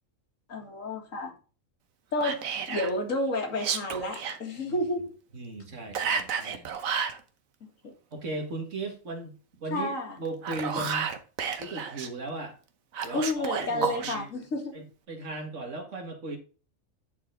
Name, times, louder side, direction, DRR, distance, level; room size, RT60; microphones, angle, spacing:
voice 1, 0.5-1.3 2.1-5.1 7.8-7.9 9.7-10.2 13.1-14.8, left 1 dB, 80° left, 2.3 m, -31 dB
Whispering, 2.2-2.9 3.5-4.4 5.9-7.2 10.2-12.1 12.9-14.2, right 6 dB, 90° right, 1.4 m, -31 dB
voice 2, 5.3-6.7 8.1-11.1 11.6-12.6 13.0-14.3 14.7-16.4, right 2 dB, 65° right, 2.1 m, -37 dB
9.9 x 4.4 x 3.9 m
omnidirectional pair, 1.4 m